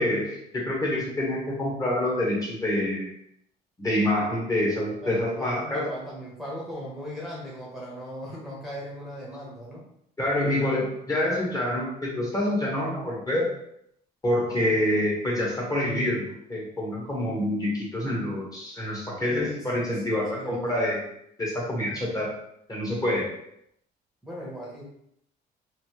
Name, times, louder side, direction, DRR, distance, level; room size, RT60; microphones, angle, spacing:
voice 1, 0.0-3.1 3.8-5.9 10.2-13.5 14.2-21.0 21.4-22.3 22.7-23.3, left 1 dB, 20° left, -3 dB, 1.1 m, -27 dB
voice 2, 5.0-9.8 19.3-20.0 20.3-20.6 24.2-24.8, equal, ahead, -7 dB, 1.0 m, -38 dB
3.2 x 2.7 x 2.9 m, 0.74 s
cardioid pair, 110°, 17 cm